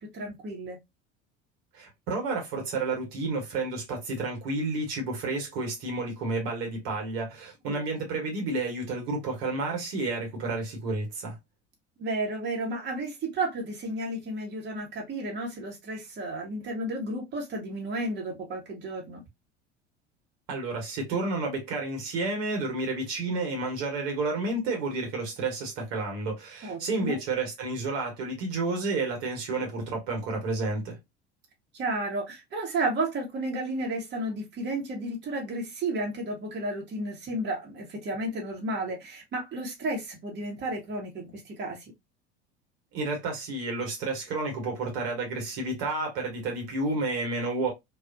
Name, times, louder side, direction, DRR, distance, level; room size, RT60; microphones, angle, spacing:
voice 1, 0.1-0.8 7.7-7.8 12.0-19.2 26.6-27.2 31.7-41.8, right 2 dB, 30° right, 1.1 m, -32 dB
voice 2, 1.7-11.4 20.5-31.0 42.9-47.7, right 3 dB, 60° right, 1.2 m, -31 dB
2.5 x 2.3 x 2.3 m
hypercardioid pair, 70°, 35 cm